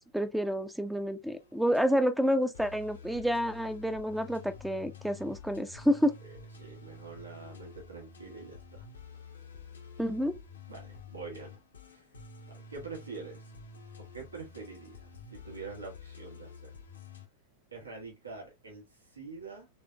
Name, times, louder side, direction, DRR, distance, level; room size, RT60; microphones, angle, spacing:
voice 1, 0.1-6.1 10.0-10.4, equal, ahead, 0.5 m, -29 dB
sound 1, 1.4-1.8 2.5-17.3, left 5 dB, 70° left, 0.8 m, -49 dB
voice 2, 6.2-8.9 10.7-11.6 11.9-12.1 12.5-13.5 14.0-16.7 17.7-19.7, right 4 dB, 80° right, 1.3 m, -45 dB
3.5 x 3.3 x 3.2 m
figure-of-eight pair, 90°, 0 cm